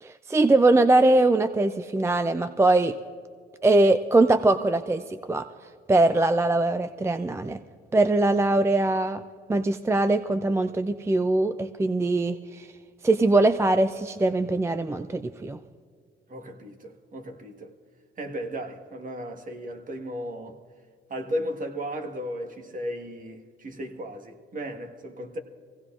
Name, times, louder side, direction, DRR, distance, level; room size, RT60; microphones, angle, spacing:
voice 1, 0.0-3.0 3.6-5.5 5.9-7.6 7.9-9.2 9.5-12.7 13.0-15.6, right 2 dB, 15° right, 0.4 m, -22 dB
voice 2, 16.3-17.7 18.2-20.6 21.1-25.4, equal, 40° right, 1.4 m, -35 dB
24.0 x 17.0 x 2.5 m
cardioid pair, 90°, 20 cm